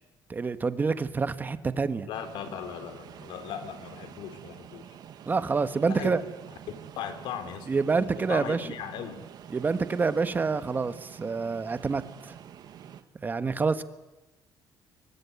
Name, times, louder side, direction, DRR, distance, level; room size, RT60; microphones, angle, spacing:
voice 1, 0.3-2.1 5.3-6.2 7.7-8.7 9.5-12.3 13.2-13.8, right 4 dB, 20° right, 11 dB, 1.4 m, -27 dB
voice 2, 2.1-4.9 5.8-6.2 7.0-7.7 8.0-9.2, left 8 dB, 75° left, 9 dB, 3.7 m, -38 dB
sound 1, 2.1-13.0, right 9 dB, 55° right, 1.7 m, -47 dB
26.0 x 23.5 x 9.6 m, 1.0 s
cardioid pair, 150°, 8 cm